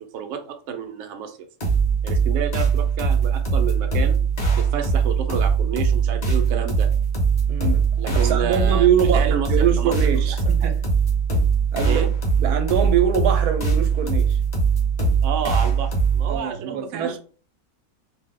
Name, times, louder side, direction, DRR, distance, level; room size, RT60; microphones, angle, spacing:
voice 1, 0.0-1.4 2.0-4.2 4.6-6.9 8.0-8.9 9.1-9.5 9.8-9.9 10.6-10.7 11.8-12.1 15.2-17.2, right 7 dB, 70° right, 0.8 m, -30 dB
sound 1, 1.6-16.4, right 5 dB, 35° left, 0.7 m, -21 dB
voice 2, 7.5-10.8 11.7-12.0 12.4-14.4 16.3-17.2, right 8 dB, 85° right, 1.1 m, -23 dB
2.6 x 2.1 x 3.6 m
omnidirectional pair, 1.6 m